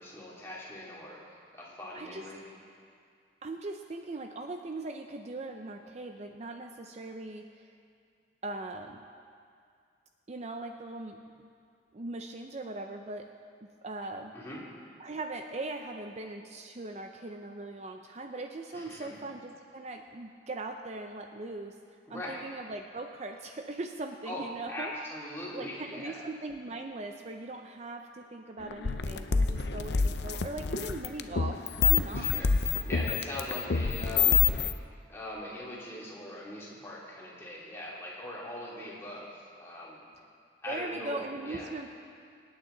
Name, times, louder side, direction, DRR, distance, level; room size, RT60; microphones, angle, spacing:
voice 1, 0.0-2.4 14.3-14.6 18.7-19.1 22.1-22.4 24.2-26.2 32.1-32.5 32.8-34.7 35.1-40.0 40.6-41.7, left 1 dB, 15° left, -6 dB, 2.7 m, -41 dB
voice 2, 3.4-7.7 8.4-9.0 10.3-11.2 11.9-13.3 13.8-14.3 15.0-21.7 22.1-24.9 25.5-32.4 40.7-42.0, right 2 dB, 40° right, 4 dB, 0.6 m, -40 dB
sound 1, 28.6-34.7, left 6 dB, 65° left, 0.6 m, -27 dB
25.5 x 8.9 x 3.9 m, 2.3 s
head